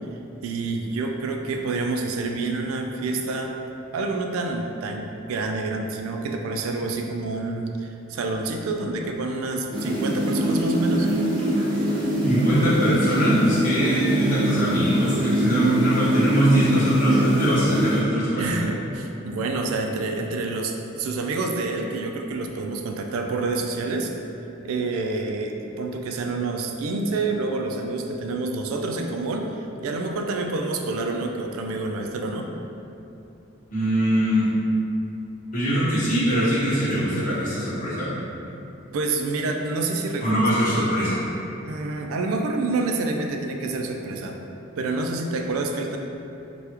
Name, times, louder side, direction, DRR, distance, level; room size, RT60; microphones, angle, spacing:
voice 1, 0.4-3.5 3.9-11.1 18.4-24.1 24.6-29.5 29.8-32.5 38.9-40.5 41.6-44.4 44.8-46.0, right 3 dB, 85° right, 3 dB, 0.3 m, -28 dB
sound 1, 9.7-18.0, equal, 20° right, 0.5 m, -23 dB
voice 2, 12.2-18.6 33.7-34.5 35.5-38.1 40.2-41.2, equal, 40° left, -10 dB, 0.9 m, -22 dB
3.3 x 2.3 x 2.9 m, 2.9 s
head